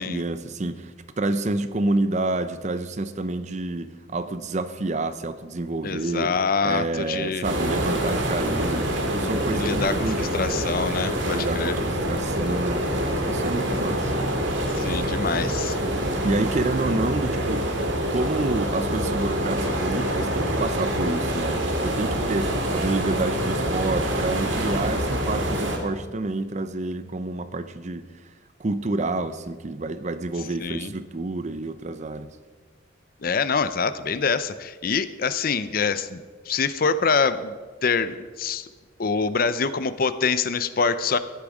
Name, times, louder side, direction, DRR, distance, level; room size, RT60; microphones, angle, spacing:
voice 1, 0.0-6.3 6.6-10.3 11.3-12.9 13.3-14.1 16.2-17.7 18.1-28.0 28.6-32.3, right 2 dB, 40° right, 12 dB, 0.6 m, -28 dB
voice 2, 5.8-7.5 9.5-11.8 14.7-15.8 30.6-30.9 33.2-37.6 37.8-38.7 39.0-41.2, left 5 dB, 50° left, 13 dB, 0.6 m, -25 dB
sound 1, 7.4-25.8, right 1 dB, 75° right, 2.2 m, -26 dB
15.0 x 10.5 x 5.0 m, 1.5 s
head